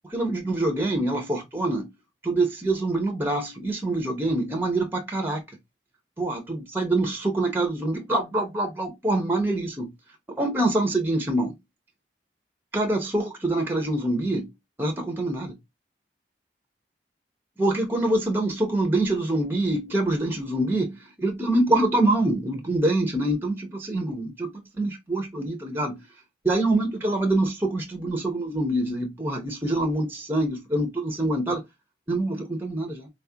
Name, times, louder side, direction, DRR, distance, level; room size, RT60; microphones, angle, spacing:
voice 1, 0.0-1.9 2.2-5.4 6.2-9.9 10.4-11.5 12.7-14.5 14.8-15.6 17.6-24.5 24.8-26.0 26.4-31.6 32.1-33.1, right 1 dB, 10° right, 0.7 m, -25 dB
4.0 x 2.4 x 2.7 m
head